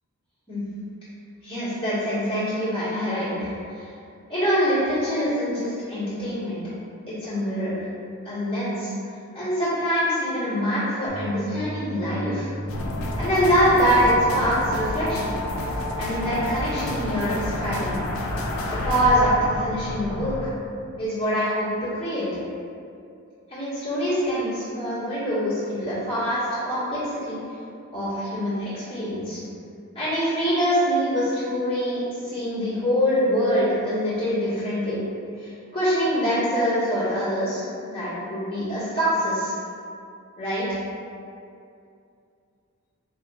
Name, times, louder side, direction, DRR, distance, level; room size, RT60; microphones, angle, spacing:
voice 1, 1.4-3.8 4.3-6.6 7.1-7.8 8.2-8.9 9.3-12.5 13.2-15.3 16.0-18.0 18.7-20.5 21.0-22.3 23.5-27.4 27.9-29.4 29.9-35.0 35.4-39.5 40.4-40.8, equal, 25° left, -13 dB, 1.4 m, -24 dB
sound 1, 11.1-16.1, right 1 dB, 80° right, 0.5 m, -37 dB
sound 2, 12.7-20.5, left 1 dB, 70° left, 0.4 m, -29 dB
3.9 x 2.8 x 2.3 m, 2.5 s
head